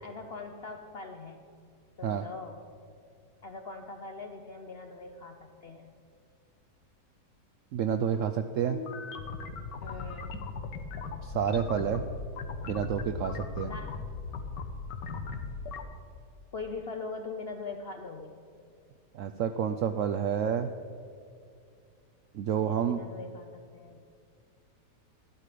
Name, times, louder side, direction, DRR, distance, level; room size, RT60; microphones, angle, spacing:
voice 1, 0.0-1.5 2.0-2.7 3.4-5.9 9.8-10.4 13.7-14.1 16.5-18.4 22.5-24.1, left 4 dB, 60° left, 4 dB, 0.6 m, -42 dB
voice 2, 7.7-8.8 11.2-12.0 12.7-13.7 19.1-20.7 22.3-23.0, right 8 dB, 75° right, 7 dB, 0.7 m, -29 dB
sound 1, 8.7-15.8, left 4 dB, 90° left, 1.6 m, -38 dB
12.5 x 12.0 x 5.0 m, 2.3 s
omnidirectional pair, 1.8 m